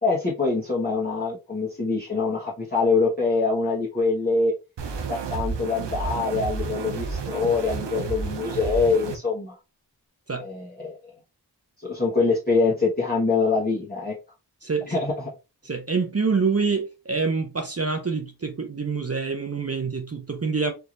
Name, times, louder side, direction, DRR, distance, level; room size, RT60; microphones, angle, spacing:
voice 1, 0.0-4.5 5.1-9.5 10.4-11.1 11.8-14.1 14.9-15.3, left 4 dB, 20° left, 1.4 m, -24 dB
sound 1, 4.8-9.2, right 5 dB, 85° right, 0.7 m, -31 dB
voice 2, 14.6-14.9 15.6-20.7, right 4 dB, 35° right, 0.7 m, -26 dB
4.6 x 2.9 x 2.5 m
cardioid pair, 40°, 41 cm